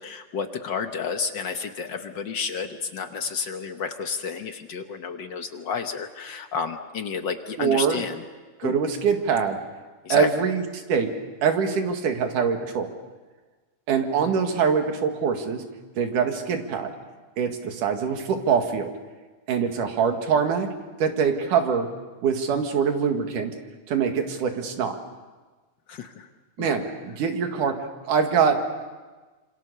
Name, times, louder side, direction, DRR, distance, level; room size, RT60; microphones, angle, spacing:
voice 1, 0.0-8.2 8.6-8.7 10.0-10.3 25.9-26.3 26.6-26.8, left 6 dB, 60° left, 6 dB, 1.1 m, -31 dB
voice 2, 7.6-8.0 8.6-9.6 10.1-10.6 10.9-11.1 11.4-12.9 13.9-15.6 16.0-16.9 17.4-18.9 19.5-20.7 21.0-21.9 22.2-23.5 23.9-25.0 26.6-26.8 27.2-27.8 28.1-28.8, right 6 dB, 85° right, 5 dB, 3.5 m, -23 dB
27.0 x 26.0 x 6.8 m, 1.3 s
omnidirectional pair, 3.5 m